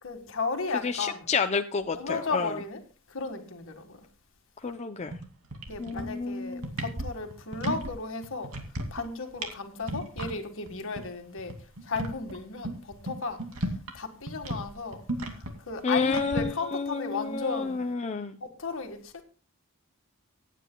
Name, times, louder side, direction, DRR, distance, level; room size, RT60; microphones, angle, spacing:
voice 1, 0.0-1.3 1.9-2.8 3.1-4.0 5.7-8.5 8.9-11.6 11.8-13.7 13.9-17.9 18.4-19.1, left 4 dB, 65° left, 1.7 m, -35 dB
voice 2, 0.8-2.5 4.6-5.2 5.8-6.7 15.8-18.4, left 4 dB, 30° left, 0.5 m, -30 dB
sound 1, 5.1-5.2 5.5-6.2 6.5-7.9 8.2-9.1 9.4-9.5 9.8-10.3 10.7-10.8 11.0-11.1 11.4-14.0 14.3-16.4, right 1 dB, 80° right, 2.4 m, -34 dB
24.5 x 9.2 x 2.3 m
head